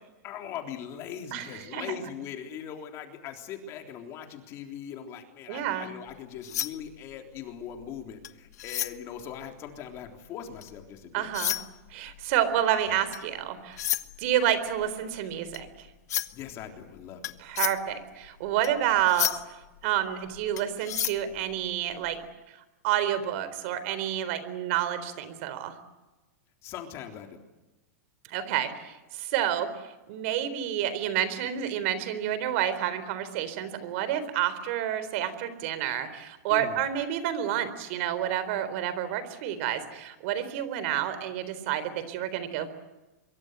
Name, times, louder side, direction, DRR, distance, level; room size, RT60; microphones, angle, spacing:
voice 1, 0.2-11.3 16.3-17.2 26.6-27.4 36.5-36.8, left 8 dB, 30° left, 4 dB, 3.6 m, -40 dB
voice 2, 1.3-1.9 5.5-5.9 11.1-11.6 11.9-13.8 14.2-15.9 17.4-19.6 19.8-22.2 22.8-25.8 28.3-29.7 30.1-42.7, right 11 dB, 50° right, 13 dB, 3.9 m, -29 dB
sound 1, 6.1-10.9 11.2-22.2, left 12 dB, 75° left, 1.3 m, -34 dB
25.5 x 23.0 x 8.2 m, 1.1 s
supercardioid pair, 155°, 9 cm